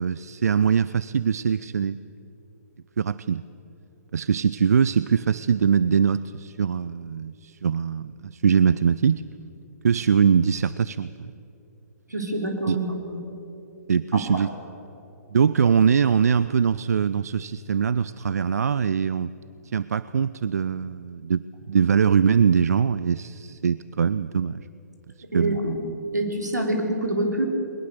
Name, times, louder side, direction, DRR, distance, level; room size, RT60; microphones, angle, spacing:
voice 1, 0.0-2.0 3.0-3.4 4.1-9.2 9.8-11.3 12.7-12.8 13.9-14.5 15.3-19.3 19.7-24.7 25.3-25.6, right 7 dB, 65° right, 16 dB, 0.5 m, -22 dB
voice 2, 12.1-13.2 14.3-14.5 25.3-25.7 26.1-27.4, right 1 dB, 90° right, 3 dB, 3.7 m, -26 dB
21.5 x 20.5 x 6.7 m, 3.0 s
figure-of-eight pair, 125°, 9 cm